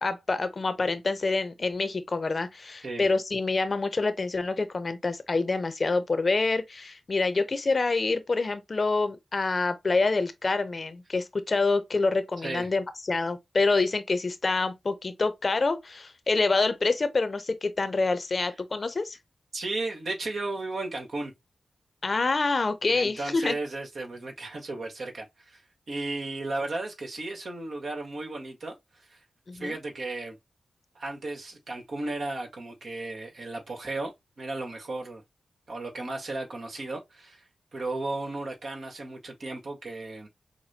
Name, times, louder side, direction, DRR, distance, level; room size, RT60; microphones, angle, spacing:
voice 1, 0.0-19.2 22.0-23.6 29.5-29.8, left 3 dB, 50° left, 0.7 m, -27 dB
voice 2, 19.5-21.3 22.9-25.6 25.9-29.2 29.5-30.4 30.9-34.1 34.4-35.2 35.7-37.5 37.7-40.3, right 2 dB, 70° right, 1.5 m, -35 dB
5.8 x 2.2 x 2.8 m
cardioid pair, 45°, 0 cm